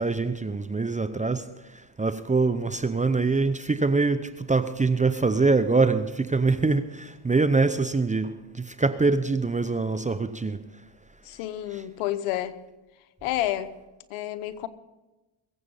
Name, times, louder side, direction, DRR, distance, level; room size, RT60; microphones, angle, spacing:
voice 1, 0.0-1.4 2.0-10.6 11.7-11.8, right 3 dB, 15° right, 10 dB, 0.7 m, -24 dB
voice 2, 11.2-12.6 13.2-13.7 14.1-14.7, left 13 dB, 85° left, 13 dB, 1.0 m, -29 dB
22.0 x 7.9 x 5.6 m, 1.1 s
supercardioid pair, 80°, 49 cm